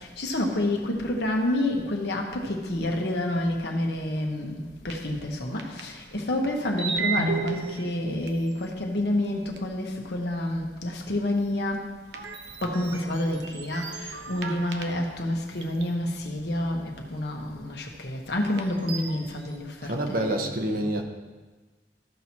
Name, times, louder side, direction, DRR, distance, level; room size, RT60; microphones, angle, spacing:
voice 1, 0.2-11.8 12.6-20.9, left 1 dB, 65° left, 1 dB, 1.2 m, -29 dB
sound 1, 4.9-5.0 5.6-6.2 6.8-8.7 9.6-9.7 12.1-15.2 15.6-15.9 17.1-17.2 18.5-19.4, right 4 dB, 85° right, 0.8 m, -34 dB
voice 2, 19.8-21.0, right 1 dB, 55° right, 4 dB, 1.0 m, -27 dB
14.0 x 6.1 x 2.9 m, 1.3 s
head